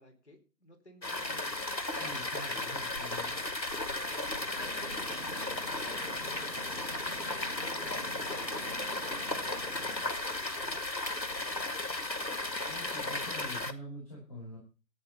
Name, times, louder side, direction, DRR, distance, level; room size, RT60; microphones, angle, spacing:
voice 1, 0.0-1.6 2.9-4.5 5.0-8.5 9.0-10.8 11.2-11.7, left 1 dB, 40° left, 3 dB, 4.3 m, -55 dB
sound 1, 1.0-13.7, left 2 dB, 85° left, 2.4 m, -35 dB
voice 2, 2.0-3.3 12.7-14.6, equal, 20° left, -6 dB, 5.8 m, -45 dB
sound 2, 4.5-10.1, right 2 dB, 45° right, 1.3 m, -47 dB
14.0 x 9.6 x 5.6 m, 0.35 s
figure-of-eight pair, 170°, 50 cm